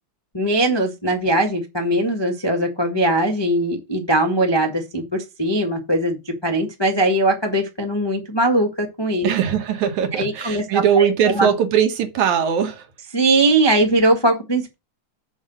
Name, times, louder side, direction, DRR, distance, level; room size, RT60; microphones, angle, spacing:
voice 1, 0.3-6.2 6.4-9.3 10.2-11.1 11.4-11.5 13.1-14.7, right 1 dB, 25° left, 0.5 m, -20 dB
voice 2, 9.2-12.9, right 8 dB, 75° right, 2.7 m, -20 dB
7.2 x 5.6 x 6.5 m
omnidirectional pair, 3.5 m